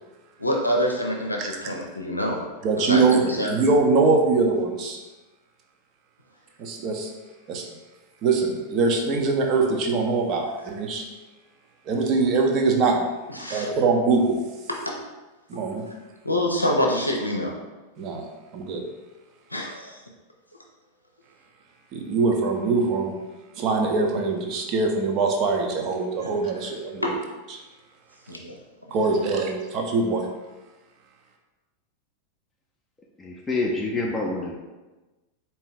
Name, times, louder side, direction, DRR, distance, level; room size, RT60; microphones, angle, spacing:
voice 1, 0.4-2.5 2.8-3.5 13.3-13.7 14.9-15.0 16.2-17.5 19.5-20.0 26.2-26.3 27.0-27.1 28.3-28.5 29.0-29.1, left 1 dB, 85° left, 0 dB, 0.5 m, -26 dB
voice 2, 2.6-5.0 6.6-7.1 7.5-7.7 8.2-11.1 11.9-13.1 13.5-14.4 15.5-15.8 18.0-18.2 18.5-18.9 21.9-23.2 23.6-27.1 28.9-30.3, right 3 dB, 35° right, 2 dB, 0.7 m, -23 dB
voice 3, 33.2-34.6, left 2 dB, 15° left, -2 dB, 0.6 m, -27 dB
4.1 x 2.9 x 3.7 m, 1.1 s
figure-of-eight pair, 90°, 0 cm